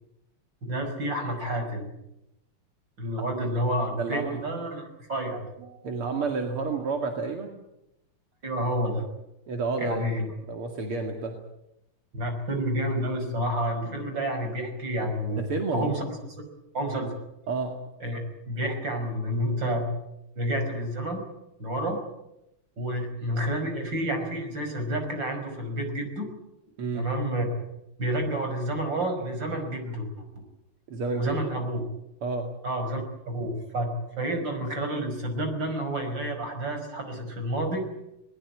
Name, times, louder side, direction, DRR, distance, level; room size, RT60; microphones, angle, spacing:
voice 1, 0.6-1.9 3.0-5.5 8.4-9.1 9.8-10.3 12.1-15.5 15.7-16.0 16.7-17.1 18.0-18.2 18.5-19.9 20.4-21.2 21.6-22.0 22.8-26.3 26.9-27.6 28.0-30.2 31.1-31.8 32.6-37.8, right 1 dB, 55° right, 5 dB, 6.0 m, -29 dB
voice 2, 4.0-4.4 5.6-7.6 9.5-10.1 10.5-11.4 15.4-16.1 17.5-17.7 26.8-27.1 30.9-31.6 32.2-32.5, right 4 dB, 80° right, 3 dB, 3.1 m, -30 dB
21.0 x 21.0 x 9.6 m, 0.89 s
omnidirectional pair, 2.4 m